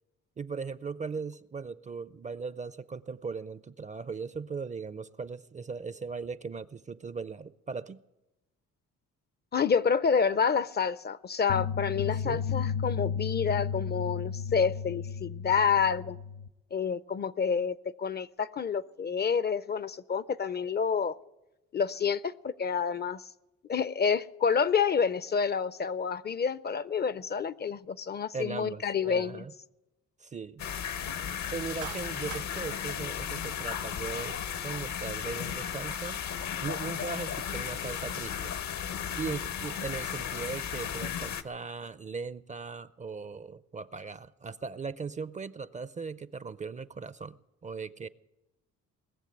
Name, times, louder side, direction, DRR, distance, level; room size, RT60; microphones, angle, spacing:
voice 1, 0.4-8.0 12.2-12.4 28.3-29.5 30.2-30.6 31.5-36.2 36.6-38.5 39.2-48.1, right 5 dB, 25° right, 0.4 m, -38 dB
voice 2, 9.5-16.2 16.7-21.2 21.7-23.2 23.7-29.4, left 6 dB, 35° left, 0.4 m, -28 dB
sound 1, 11.5-16.5, left 7 dB, 90° left, 0.6 m, -33 dB
sound 2, 30.6-41.4, left 8 dB, 70° left, 0.9 m, -35 dB
Clapping, 31.8-32.5, right 12 dB, 75° right, 0.7 m, -42 dB
20.0 x 7.2 x 9.5 m
cardioid pair, 90°, 30 cm